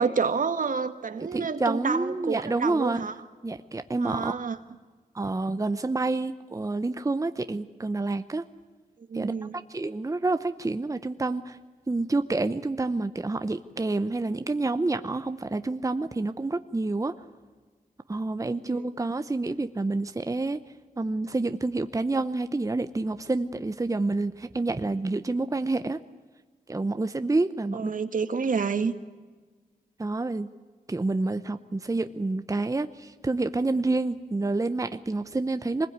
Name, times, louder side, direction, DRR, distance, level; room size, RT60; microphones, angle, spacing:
voice 1, 0.0-3.1 4.0-4.6 9.1-9.5 18.7-18.8 27.7-28.9, right 5 dB, 60° right, 10 dB, 1.6 m, -28 dB
voice 2, 1.3-3.1 3.4-4.4 5.1-8.4 9.1-9.3 9.7-11.6 11.9-17.2 18.1-20.6 21.0-26.0 26.7-27.9 30.0-30.5 30.9-35.9, right 2 dB, 20° right, 10 dB, 0.9 m, -28 dB
24.0 x 20.5 x 9.6 m, 1.4 s
wide cardioid pair, 85°, 15 cm